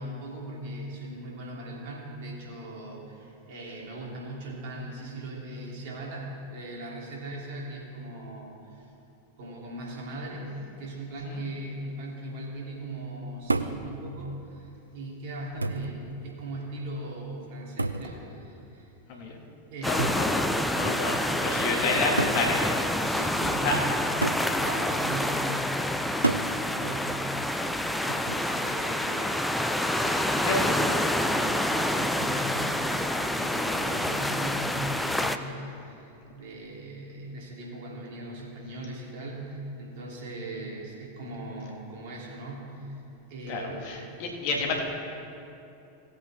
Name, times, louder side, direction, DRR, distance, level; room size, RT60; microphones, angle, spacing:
voice 1, 0.0-8.9 9.4-10.5 10.8-18.9 19.7-20.5 21.6-22.3 23.0-25.7 26.0-27.2 28.1-29.7 29.9-43.0 43.3-44.2 44.7-44.8, right 1 dB, 55° right, -3 dB, 2.9 m, -39 dB
sound 1, 13.5-13.9 14.9-15.0 15.6-16.0 17.8-18.1 20.0-20.3 21.3-21.4 22.2-22.5 24.2-24.5 26.2-26.5 28.1-28.5, right 2 dB, 85° right, 0.4 m, -29 dB
voice 2, 19.8-20.4 20.7-22.8 23.1-23.2 23.6-23.7 30.4-30.5 43.5-44.8, left 3 dB, 50° left, 0 dB, 1.9 m, -29 dB
sound 2, 19.8-35.4, left 1 dB, 5° left, 0.5 m, -27 dB
18.5 x 7.9 x 3.5 m, 2.8 s
figure-of-eight pair, 90°, 0 cm